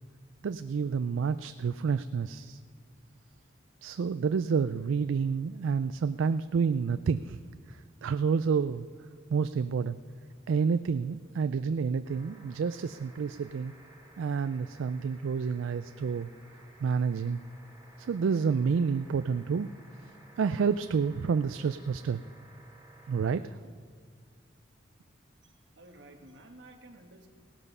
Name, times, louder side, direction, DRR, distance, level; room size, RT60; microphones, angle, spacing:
voice 1, 0.4-2.6 3.8-7.4 7.7-8.9 9.3-10.0 10.5-13.7 14.2-16.3 16.8-17.4 18.0-19.7 20.4-22.2 23.1-23.6, right 5 dB, 90° right, 12 dB, 0.4 m, -29 dB
sound 1, 12.0-23.3 24.7-24.8, right 1 dB, 15° right, 4.6 m, -57 dB
voice 2, 25.4-27.3, right 1 dB, 65° right, 2 dB, 1.5 m, -53 dB
17.0 x 12.0 x 5.5 m, 2.1 s
head